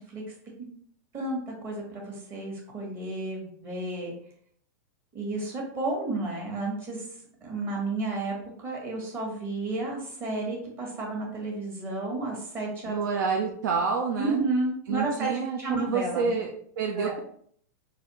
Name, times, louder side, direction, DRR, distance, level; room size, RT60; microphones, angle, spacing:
voice 1, 1.1-4.1 5.1-7.0 7.4-13.0 14.2-15.3 15.6-16.4 16.9-17.2, right 2 dB, 25° right, -2 dB, 1.2 m, -32 dB
voice 2, 12.8-14.4 14.9-17.2, right 5 dB, 80° right, 2 dB, 0.5 m, -28 dB
4.1 x 2.6 x 3.0 m, 0.62 s
supercardioid pair, 160°, 10 cm